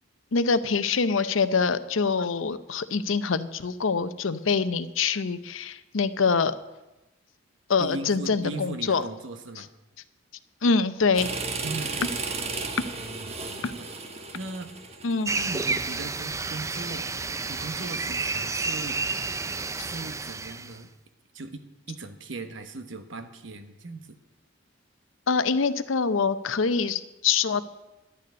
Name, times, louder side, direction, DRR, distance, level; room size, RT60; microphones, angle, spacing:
voice 1, 0.3-6.5 7.7-9.0 9.6-9.7 10.6-11.3 13.6-13.7 15.0-15.3 25.3-27.6, left 5 dB, 75° left, 13 dB, 0.7 m, -25 dB
voice 2, 7.8-9.7 11.6-12.6 12.9-13.9 14.3-14.7 15.4-17.1 17.5-19.0 19.8-20.9 21.3-21.6 21.9-24.0, right 2 dB, 70° right, 7 dB, 1.2 m, -38 dB
sound 1, 11.1-16.0, right 4 dB, 30° right, 1.2 m, -34 dB
sound 2, 15.3-20.8, right 4 dB, 15° right, 0.4 m, -30 dB
11.5 x 6.8 x 9.4 m, 1.0 s
head